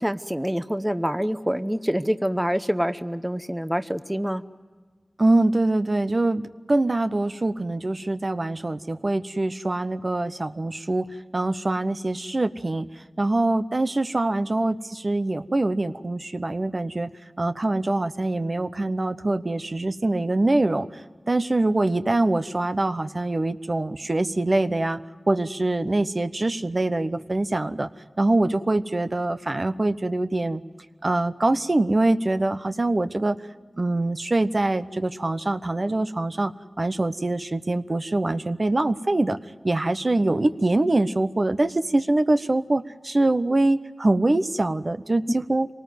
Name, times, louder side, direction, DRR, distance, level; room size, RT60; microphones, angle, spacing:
voice 1, 0.0-4.4, equal, 10° right, 11 dB, 0.8 m, -26 dB
voice 2, 5.2-11.1 11.3-17.1 17.4-20.9 21.3-25.0 25.3-27.9 28.2-30.6 31.0-33.4 33.8-36.5 36.8-39.4 39.6-45.7, right 2 dB, 50° right, 10 dB, 0.9 m, -24 dB
25.5 x 19.0 x 9.3 m, 1.5 s
cardioid pair, 40°, 0 cm